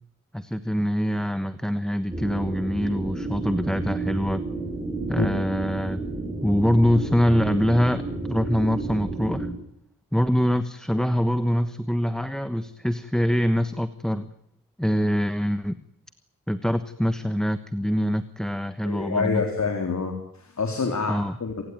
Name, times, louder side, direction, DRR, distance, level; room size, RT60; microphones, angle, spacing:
voice 1, 0.3-4.4 5.1-6.0 6.4-9.5 10.1-14.3 14.8-15.8 16.5-19.4 21.1-21.3, equal, ahead, 11 dB, 1.2 m, -24 dB
sound 1, 2.1-9.5, right 3 dB, 15° right, 6.9 m, -31 dB
voice 2, 18.8-21.6, left 4 dB, 55° left, 4 dB, 3.9 m, -27 dB
28.5 x 18.0 x 9.5 m, 0.75 s
wide cardioid pair, 90°, 33 cm